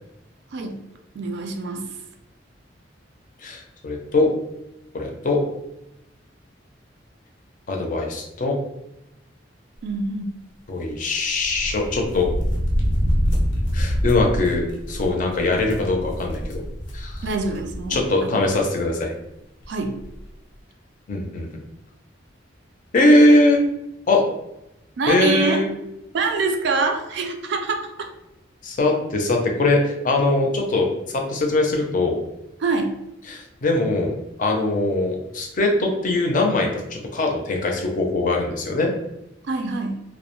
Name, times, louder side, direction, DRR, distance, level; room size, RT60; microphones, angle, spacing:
voice 1, 1.1-1.9 9.8-10.3 17.2-18.4 19.7-20.0 25.0-25.6 26.1-28.1 32.6-33.0 39.5-40.0, right 4 dB, 65° right, 5 dB, 0.4 m, -25 dB
voice 2, 3.4-4.3 4.9-5.4 7.7-8.6 10.7-12.3 13.7-16.6 16.9-17.2 17.9-19.1 21.1-21.5 22.9-23.6 24.1-24.2 25.1-25.7 28.6-32.2 33.3-34.1 34.4-38.9, left 2 dB, 45° left, 1 dB, 0.5 m, -21 dB
sound 1, 11.3-18.1 18.4-18.5 19.6-19.7 20.0-20.2, equal, 90° left, 0.6 m, -25 dB
2.2 x 2.0 x 2.9 m, 0.88 s
head